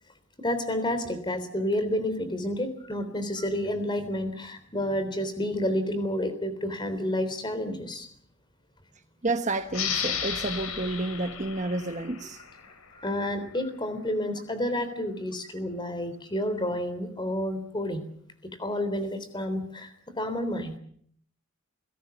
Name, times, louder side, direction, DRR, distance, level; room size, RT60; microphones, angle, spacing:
voice 1, 0.4-8.1 13.0-18.0 18.4-20.8, left 1 dB, 20° left, 3.5 m, -30 dB
voice 2, 9.2-12.4, right 2 dB, 35° right, 1.2 m, -30 dB
sound 1, 9.7-13.0, left 7 dB, 85° left, 3.9 m, -33 dB
29.5 x 17.0 x 7.1 m
head